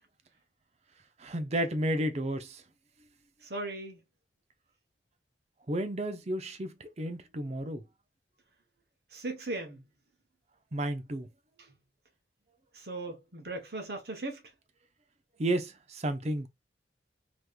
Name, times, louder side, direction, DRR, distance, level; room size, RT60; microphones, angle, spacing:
voice 1, 1.2-2.6 5.7-7.8 10.7-11.3 15.4-16.5, right 1 dB, 35° right, 0.6 m, -32 dB
voice 2, 3.4-4.0 9.1-9.8 11.6-11.7 12.7-14.4, right 2 dB, 60° right, 1.0 m, -38 dB
3.5 x 3.0 x 2.4 m
head